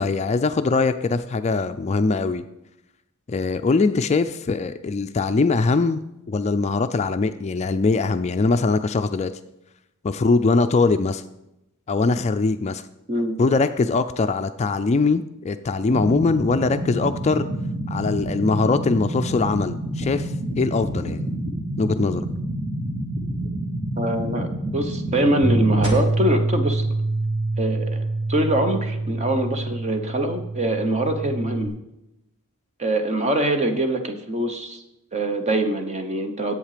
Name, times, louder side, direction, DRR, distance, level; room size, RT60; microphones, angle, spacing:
voice 1, 0.0-2.4 3.3-6.0 6.3-9.3 10.0-11.2 11.9-12.8 13.4-17.5 17.9-21.3 21.8-22.3, left 3 dB, 30° left, 9 dB, 0.3 m, -22 dB
sound 1, 15.9-25.9, right 1 dB, 75° right, 2.6 m, -28 dB
voice 2, 24.0-26.8 27.6-31.7 32.8-34.8 35.1-36.6, right 1 dB, 30° right, 6 dB, 1.0 m, -24 dB
Bass guitar, 25.4-31.7, right 2 dB, ahead, 2.8 m, -25 dB
10.5 x 8.1 x 5.0 m, 0.90 s
head